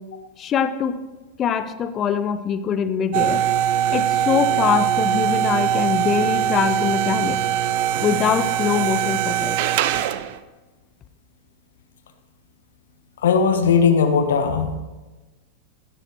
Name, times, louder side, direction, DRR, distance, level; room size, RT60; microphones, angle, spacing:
voice 1, 0.4-1.0 1.4-3.4 3.9-7.4 8.0-9.6, left 7 dB, 30° left, 12 dB, 0.7 m, -23 dB
sound 1, 3.1-10.4, right 10 dB, 50° right, 0.5 m, -22 dB
voice 2, 13.2-14.7, left 6 dB, 60° left, 8 dB, 0.8 m, -18 dB
15.5 x 12.0 x 3.1 m, 1.2 s
figure-of-eight pair, 90°, 0 cm